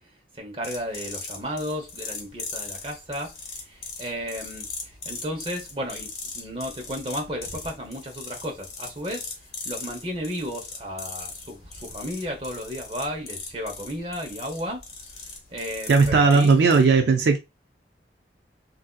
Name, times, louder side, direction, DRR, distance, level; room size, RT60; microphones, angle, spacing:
voice 1, 0.3-14.8 15.1-16.5, equal, 30° right, 0.8 m, -34 dB
sound 1, 0.6-16.8, left 4 dB, 60° left, 1.3 m, -39 dB
voice 2, 15.9-17.4, right 4 dB, 65° right, 0.4 m, -17 dB
3.4 x 2.6 x 2.2 m
head